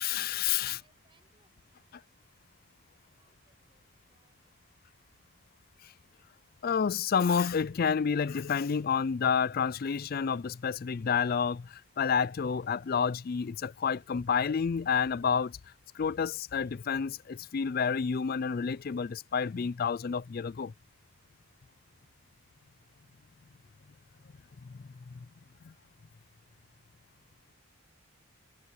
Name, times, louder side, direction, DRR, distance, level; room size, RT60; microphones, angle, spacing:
voice 1, 0.0-0.8 5.8-5.9 6.6-15.6 15.9-20.7 24.6-24.9 25.1-25.3 25.6-25.7, left 6 dB, 40° left, 0.3 m, -29 dB
voice 2, 0.6-2.0 3.1-4.4 4.6-4.7, right 4 dB, 25° right, 5.6 m, -71 dB
head